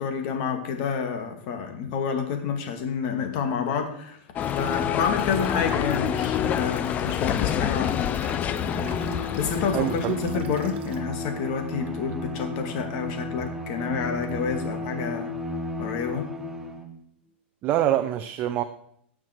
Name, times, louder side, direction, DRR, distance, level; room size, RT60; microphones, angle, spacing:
voice 1, 0.0-4.2 4.6-8.1 9.1-15.3 15.8-16.3, left 6 dB, 45° left, 5 dB, 2.2 m, -29 dB
sound 1, 4.4-10.4, left 9 dB, 25° left, 0.5 m, -27 dB
sound 2, 4.4-11.0, right 2 dB, 60° right, 2.1 m, -44 dB
Bowed string instrument, 8.4-17.0, left 1 dB, 5° right, 1.1 m, -34 dB
voice 2, 9.7-10.2 17.6-18.6, right 12 dB, 30° right, 7 dB, 0.6 m, -25 dB
16.5 x 6.1 x 4.5 m, 0.67 s
supercardioid pair, 145°, 6 cm